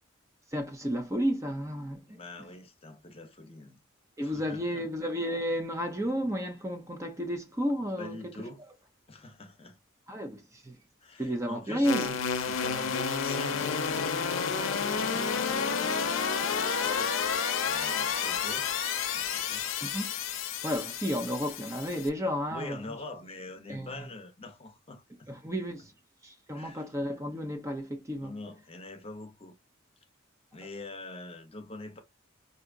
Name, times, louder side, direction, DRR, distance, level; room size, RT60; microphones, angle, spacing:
voice 1, 0.5-2.2 4.2-8.2 10.1-10.8 11.2-12.2 19.8-20.1 20.6-22.8 23.7-23.9 25.3-25.9 26.2-28.3, equal, 15° right, 0.6 m, -32 dB
voice 2, 2.1-3.8 4.2-4.9 8.0-8.6 9.1-9.8 11.0-17.1 17.6-18.7 19.1-19.7 22.5-25.3 26.5-26.9 28.2-29.6 30.5-32.0, left 2 dB, 30° left, 0.8 m, -45 dB
sound 1, 11.8-22.1, left 6 dB, 70° left, 0.6 m, -30 dB
4.8 x 2.7 x 2.5 m
head